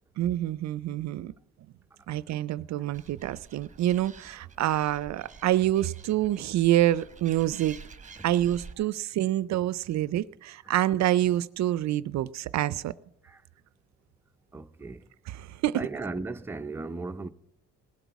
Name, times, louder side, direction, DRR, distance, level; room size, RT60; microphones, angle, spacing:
voice 1, 0.2-1.3 2.1-7.8 8.2-12.9 15.3-15.9, right 13 dB, 65° right, 0.4 m, -27 dB
Animal, 2.9-8.7, right 5 dB, 25° right, 1.0 m, -49 dB
voice 2, 14.5-15.1 15.7-17.3, right 3 dB, 10° right, 0.5 m, -36 dB
18.0 x 8.1 x 4.6 m
cardioid pair, 90°, 30 cm